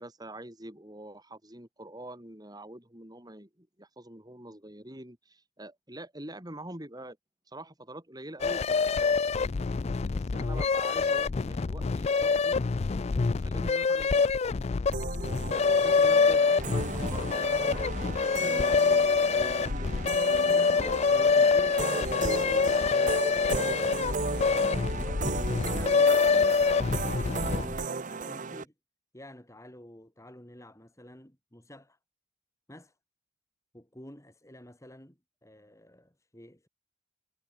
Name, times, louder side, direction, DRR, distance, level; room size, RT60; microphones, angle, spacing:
voice 1, 0.0-7.2 7.5-9.2 10.1-12.6 13.4-14.2 15.8-17.8 18.2-20.0, right 1 dB, 20° right, 4.4 m, -45 dB
sound 1, 8.4-27.8, left 4 dB, 30° left, 0.4 m, -26 dB
sound 2, 14.9-28.6, right 4 dB, 40° right, 0.8 m, -35 dB
voice 2, 15.0-15.8 18.5-18.7 20.5-26.6 27.2-28.7 29.1-32.0 32.7-32.9 33.7-36.7, left 1 dB, 15° left, 3.2 m, -49 dB
head